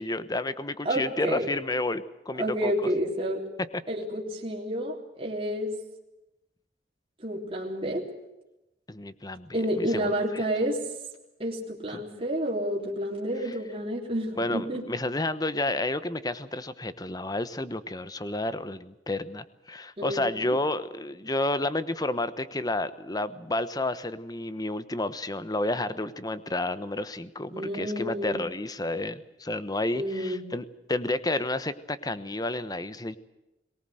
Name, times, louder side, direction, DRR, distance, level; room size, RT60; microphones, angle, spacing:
voice 1, 0.0-2.7 8.9-10.4 11.9-12.0 13.4-13.5 14.4-33.2, left 2 dB, 20° left, 14 dB, 1.1 m, -31 dB
voice 2, 0.8-1.5 2.4-3.4 3.9-5.7 7.2-8.0 9.5-10.8 11.4-14.8 20.0-20.6 27.5-28.4 29.9-30.4, equal, 30° right, -2 dB, 3.5 m, -30 dB
23.0 x 19.0 x 7.9 m, 0.93 s
head